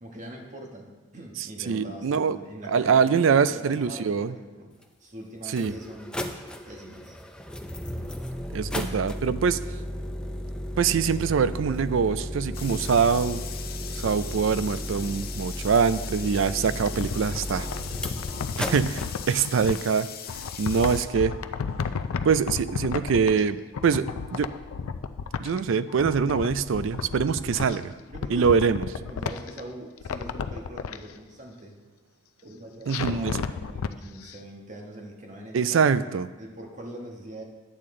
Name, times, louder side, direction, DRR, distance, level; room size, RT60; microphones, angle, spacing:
voice 1, 0.0-4.7 5.0-6.2 6.6-7.2 27.4-27.8 28.1-31.8 32.4-35.9 36.4-37.4, right 1 dB, 35° right, 1 dB, 1.3 m, -42 dB
voice 2, 1.7-2.4 2.7-4.3 5.5-5.7 8.5-9.6 10.8-13.4 13.9-17.7 18.6-20.1 20.3-21.3 22.2-24.1 24.3-24.5 25.4-27.8 28.3-28.9 32.9-33.4 35.5-36.3, right 6 dB, 65° right, 14 dB, 0.4 m, -24 dB
sound 1, 4.8-4.9 5.5-19.1, equal, 5° left, 0.4 m, -34 dB
sound 2, 12.5-21.1, left 9 dB, 45° left, 0.6 m, -40 dB
sound 3, 16.6-19.8 20.3-23.5 23.7-25.6 25.9-27.8 28.1-29.6 30.0-31.0 32.9-33.9 34.3-34.4, left 5 dB, 90° left, 0.4 m, -33 dB
10.0 x 8.6 x 3.7 m, 1.2 s
head